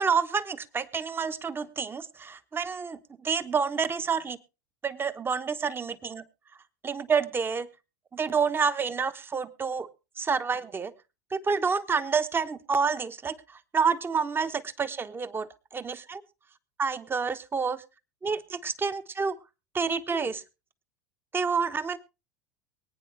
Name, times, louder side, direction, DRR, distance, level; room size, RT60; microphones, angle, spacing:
voice 1, 0.0-4.4 4.8-6.2 6.8-7.7 8.1-9.9 10.2-10.9 11.3-13.3 13.7-16.2 16.8-17.8 18.2-19.4 19.7-20.4 21.3-22.0, right 5 dB, 20° right, 12 dB, 1.1 m, -28 dB
23.0 x 9.3 x 3.3 m, 0.30 s
hypercardioid pair, 80°, 11 cm